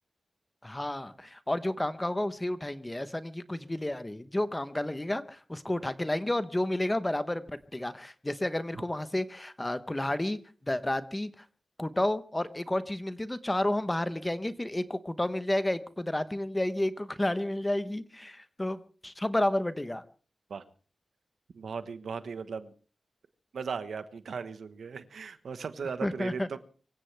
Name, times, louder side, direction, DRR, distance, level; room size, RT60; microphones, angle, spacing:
voice 1, 0.6-11.4 11.8-20.0 26.0-26.5, left 1 dB, 15° left, 0.9 m, -31 dB
voice 2, 21.5-22.7 23.5-26.6, right 5 dB, 75° right, 1.3 m, -37 dB
24.5 x 16.0 x 3.4 m
wide cardioid pair, 150°, 0 cm